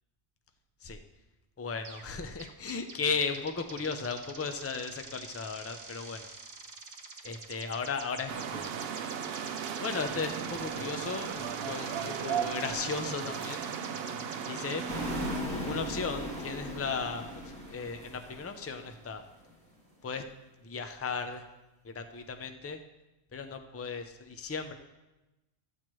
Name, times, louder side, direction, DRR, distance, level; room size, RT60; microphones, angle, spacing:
voice 1, 1.6-6.3 7.2-8.7 9.8-13.6 14.5-14.8 15.6-17.4 17.7-19.2 20.0-20.2 20.6-21.4 21.8-22.8 23.3-24.7, left 5 dB, 25° left, 7 dB, 0.3 m, -36 dB
sound 1, 1.8-2.1 2.4-14.8, right 3 dB, 40° right, 1.0 m, -47 dB
sound 2, 8.3-15.4, right 8 dB, 65° right, 0.8 m, -36 dB
sound 3, 14.9-19.2, equal, 5° left, 1.7 m, -38 dB
13.0 x 7.6 x 3.1 m, 1.0 s
omnidirectional pair, 1.2 m